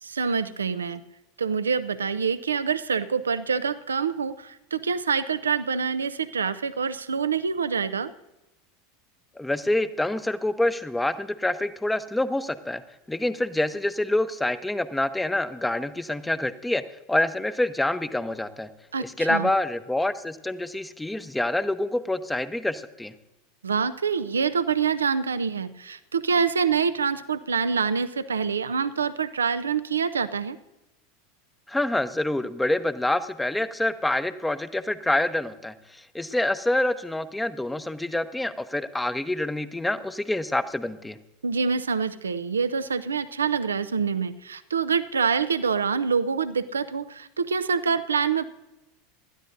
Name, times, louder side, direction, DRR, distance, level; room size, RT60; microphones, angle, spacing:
voice 1, 0.0-1.0 1.4-8.1 18.9-19.5 23.6-30.6 41.4-48.4, right 6 dB, 85° right, 13 dB, 0.5 m, -26 dB
voice 2, 9.4-12.8 13.1-18.7 19.0-23.1 31.7-41.2, left 1 dB, 5° left, 12 dB, 0.8 m, -26 dB
19.5 x 12.5 x 2.6 m, 0.98 s
hypercardioid pair, 85°, 0 cm